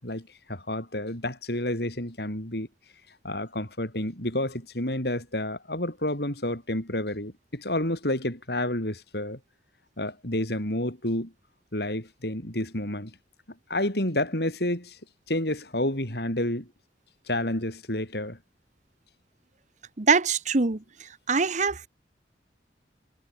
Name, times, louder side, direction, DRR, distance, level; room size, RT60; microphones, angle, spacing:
voice 1, 0.0-2.7 3.2-9.4 10.0-11.3 11.7-13.1 13.7-15.0 15.3-16.7 17.3-18.4, left 1 dB, 65° left, 6.8 m, -30 dB
voice 2, 20.0-20.8 21.3-21.9, right 4 dB, 45° right, 1.0 m, -23 dB
head